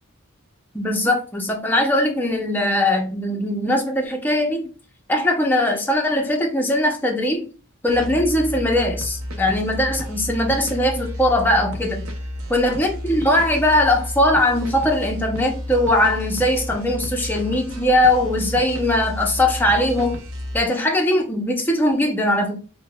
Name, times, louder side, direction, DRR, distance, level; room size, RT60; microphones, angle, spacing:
voice 1, 0.7-4.7 5.1-7.5 7.8-12.1 12.5-20.2 20.5-22.6, left 1 dB, 10° left, 0.5 m, -20 dB
sound 1, 7.9-20.6, left 1 dB, 80° right, 0.6 m, -31 dB
5.1 x 2.1 x 2.2 m
head